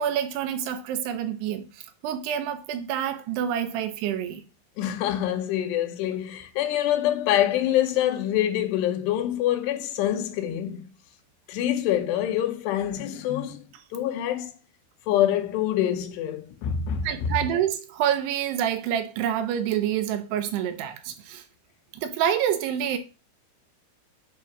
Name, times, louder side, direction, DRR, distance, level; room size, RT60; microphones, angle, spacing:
voice 1, 0.0-4.4 17.0-21.4 21.9-23.0, right 9 dB, 80° right, 2.8 m, -27 dB
voice 2, 4.8-10.9 11.5-13.6 13.9-14.6 15.1-17.3, left 11 dB, 85° left, 2.9 m, -25 dB
8.4 x 2.9 x 4.7 m
omnidirectional pair, 4.8 m